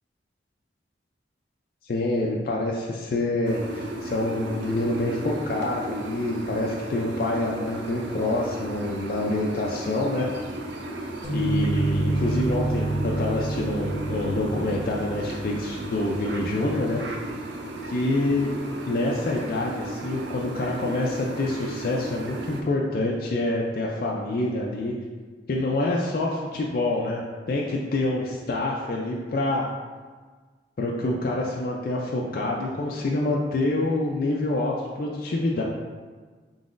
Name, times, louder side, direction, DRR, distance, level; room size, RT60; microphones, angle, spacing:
voice 1, 1.8-10.3 11.3-17.0 17.9-18.5 18.9-24.9 25.5-29.7 30.8-35.6, left 2 dB, 50° left, -2 dB, 0.3 m, -26 dB
sound 1, 3.4-22.6, right 1 dB, 80° right, 0.4 m, -35 dB
sound 2, 11.2-16.8, right 2 dB, 25° right, 1.4 m, -29 dB
3.9 x 3.8 x 2.5 m, 1.5 s
head